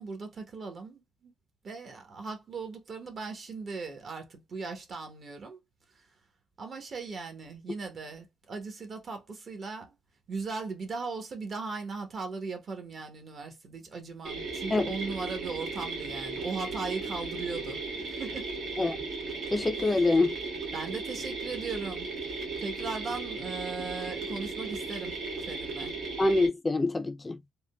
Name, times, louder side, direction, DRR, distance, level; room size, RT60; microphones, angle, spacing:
voice 1, 0.0-1.3 1.6-5.6 5.9-6.1 6.6-9.9 10.3-18.5 20.7-22.1 22.6-25.9, right 4 dB, 50° right, 1.0 m, -38 dB
sound 1, 14.2-26.5, right 3 dB, 75° right, 1.1 m, -36 dB
voice 2, 19.5-20.4 26.2-27.4, left 2 dB, 20° left, 0.4 m, -25 dB
3.6 x 2.2 x 2.2 m
cardioid pair, 95°, 0 cm